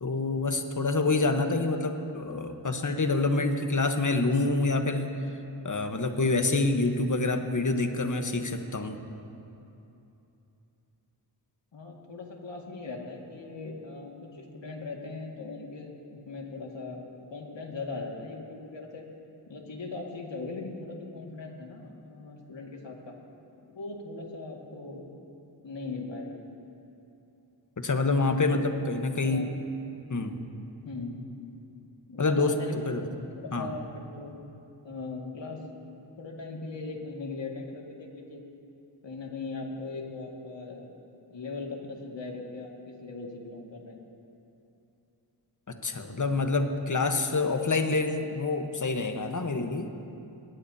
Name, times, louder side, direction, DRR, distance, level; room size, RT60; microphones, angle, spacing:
voice 1, 0.0-5.1 5.6-9.0 27.8-29.4 30.1-30.4 32.2-32.5 32.9-33.0 33.5-33.7 45.7-49.9, left 3 dB, 45° left, 6 dB, 1.2 m, -27 dB
voice 2, 11.7-15.9 16.3-17.0 17.3-19.0 19.5-23.1 23.7-25.1 25.6-26.4 28.4-28.6 29.0-29.5 30.8-31.2 32.1-34.3 34.8-35.6 36.2-38.4 39.0-40.9 41.3-44.0, left 3 dB, 80° left, 0 dB, 2.1 m, -39 dB
20.5 x 19.0 x 2.8 m, 2.8 s
wide cardioid pair, 80°, 44 cm